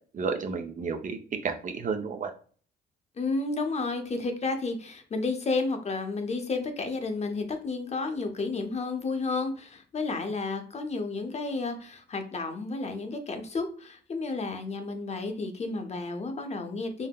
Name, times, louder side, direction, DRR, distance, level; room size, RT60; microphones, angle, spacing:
voice 1, 0.1-2.3, right 5 dB, 40° right, 6 dB, 0.4 m, -31 dB
voice 2, 3.2-17.1, left 3 dB, 35° left, 6 dB, 0.5 m, -31 dB
3.5 x 2.0 x 2.2 m, 0.43 s
cardioid pair, 90°, 20 cm